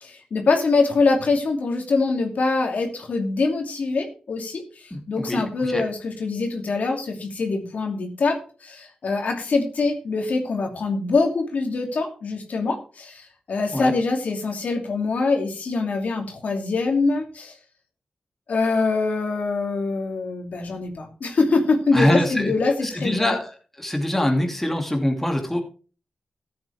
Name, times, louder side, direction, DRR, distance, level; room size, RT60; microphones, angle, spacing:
voice 1, 0.0-17.6 18.5-23.3, left 3 dB, 75° left, 3 dB, 2.6 m, -24 dB
voice 2, 4.9-5.8 13.7-13.9 21.9-22.5 22.8-23.5 23.8-25.6, left 1 dB, 10° left, 2 dB, 2.5 m, -24 dB
14.0 x 8.6 x 3.4 m, 0.36 s
wide cardioid pair, 95°, 3 cm